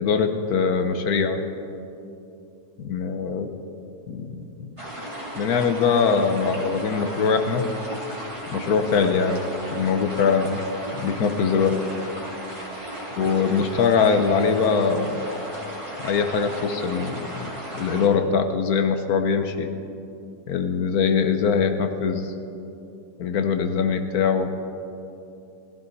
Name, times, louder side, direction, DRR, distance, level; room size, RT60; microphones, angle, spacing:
voice 1, 0.0-1.4 2.8-3.5 4.1-4.7 5.4-7.7 8.5-9.4 9.7-10.6 11.0-11.8 13.2-15.2 16.0-19.7 20.5-22.3 23.2-24.5, left 5 dB, 70° left, 7 dB, 1.4 m, -22 dB
sound 1, 4.8-18.1, equal, 20° right, 2.3 m, -35 dB
17.5 x 15.0 x 4.1 m, 2.7 s
omnidirectional pair, 1.7 m